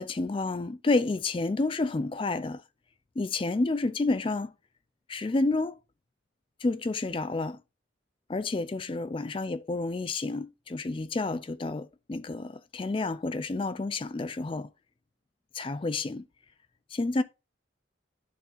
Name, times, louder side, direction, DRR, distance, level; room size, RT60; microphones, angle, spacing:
voice 1, 0.0-2.6 3.2-4.5 5.1-5.8 6.6-7.6 8.3-14.7 15.5-16.2 16.9-17.2, left 3 dB, 25° left, 0.4 m, -30 dB
11.0 x 3.9 x 2.6 m
head